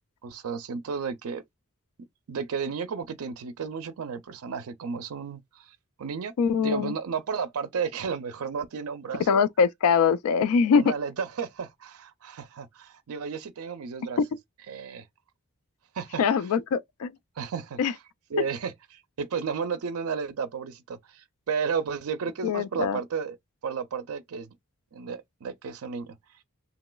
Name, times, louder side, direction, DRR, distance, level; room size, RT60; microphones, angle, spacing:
voice 1, 0.2-1.4 2.3-6.3 6.6-9.4 10.7-14.2 14.7-15.1 15.9-16.2 17.4-17.8 18.3-23.4 23.6-24.5 24.9-26.2, right 6 dB, 75° right, 0.5 m, -33 dB
voice 2, 6.4-6.9 9.3-10.9 16.2-17.1 17.8-17.9 22.4-23.0, left 6 dB, 85° left, 0.3 m, -23 dB
2.9 x 2.8 x 2.2 m
head